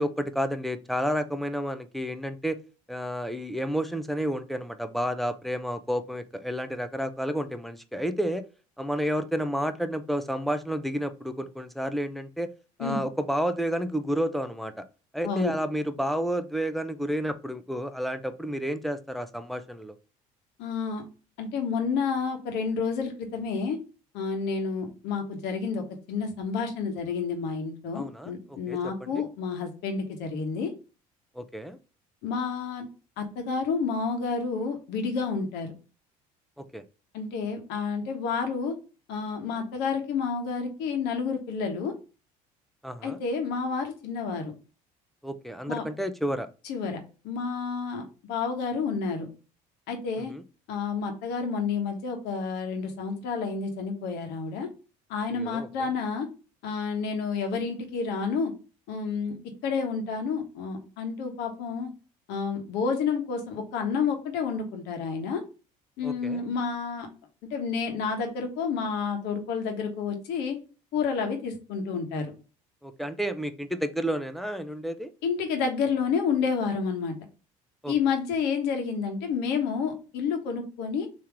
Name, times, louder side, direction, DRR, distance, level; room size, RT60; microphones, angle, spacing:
voice 1, 0.0-2.6 2.9-8.4 8.8-12.5 12.8-14.8 15.1-19.9 27.9-28.3 28.7-29.2 31.3-31.8 36.6-36.8 42.8-43.2 45.2-46.5 50.3-50.4 55.3-55.9 66.0-66.4 72.8-75.1 77.8-77.9, equal, ahead, 10 dB, 0.6 m, -30 dB
voice 2, 20.6-21.0 21.4-23.8 24.1-25.8 26.1-30.7 32.2-32.8 33.2-35.7 37.1-38.8 39.1-41.9 43.0-44.5 45.7-45.8 46.6-49.3 49.9-50.3 50.7-54.7 55.1-56.3 56.6-58.5 58.9-59.4 59.6-61.9 62.3-65.4 66.0-67.1 67.5-70.6 70.9-72.3 75.2-77.1 77.9-81.1, left 5 dB, 70° left, 4 dB, 1.3 m, -30 dB
3.6 x 3.0 x 4.6 m, 0.34 s
hypercardioid pair, 70°, 18 cm